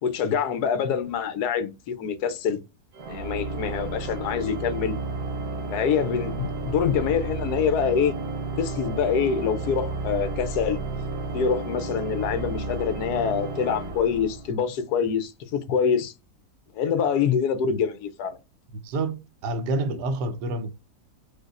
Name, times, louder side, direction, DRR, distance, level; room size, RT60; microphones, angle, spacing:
voice 1, 0.0-2.6 3.1-5.0 5.7-8.2 8.6-10.8 11.3-16.1 16.7-18.4, left 7 dB, 75° left, 1.2 m, -25 dB
Organ, 2.9-14.8, right 3 dB, 50° right, 0.9 m, -32 dB
voice 2, 18.8-20.7, right 2 dB, 90° right, 1.2 m, -28 dB
4.9 x 2.2 x 2.4 m
omnidirectional pair, 1.7 m